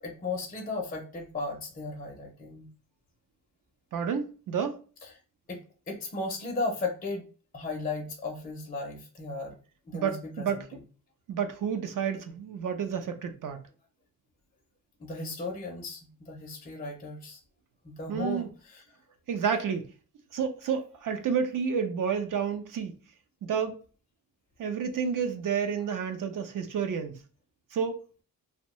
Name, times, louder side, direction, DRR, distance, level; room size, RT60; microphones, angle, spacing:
voice 1, 0.0-2.7 5.0-5.1 5.5-5.6 5.9-7.2 7.5-9.6 9.9-10.6 15.0-17.4 17.8-18.8, left 3 dB, 25° left, 0.5 m, -35 dB
voice 2, 3.9-4.8 9.9-10.7 11.3-13.6 18.1-18.5 19.3-19.9 20.3-22.9 23.4-23.8 24.6-27.2 27.7-28.0, right 7 dB, 65° right, 0.5 m, -30 dB
2.6 x 2.1 x 2.9 m
wide cardioid pair, 150°, 35 cm